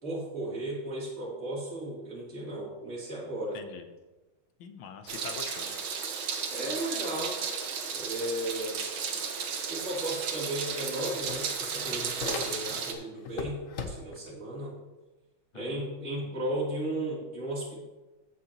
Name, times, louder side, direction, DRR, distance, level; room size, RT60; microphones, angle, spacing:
voice 1, 0.0-3.6 6.5-7.4 7.9-8.8 9.7-14.7 15.5-17.8, right 1 dB, 35° right, -7 dB, 3.3 m, -35 dB
voice 2, 3.5-3.9 4.6-5.8 15.5-16.3, left 6 dB, 80° left, 6 dB, 1.7 m, -44 dB
Meow, 5.1-12.9, right 6 dB, 75° right, 1.8 m, -34 dB
sound 1, 10.3-10.4 10.6-12.9 13.2-14.3, left 5 dB, 50° left, 1.0 m, -39 dB
15.0 x 6.8 x 2.9 m, 1.1 s
omnidirectional pair, 2.3 m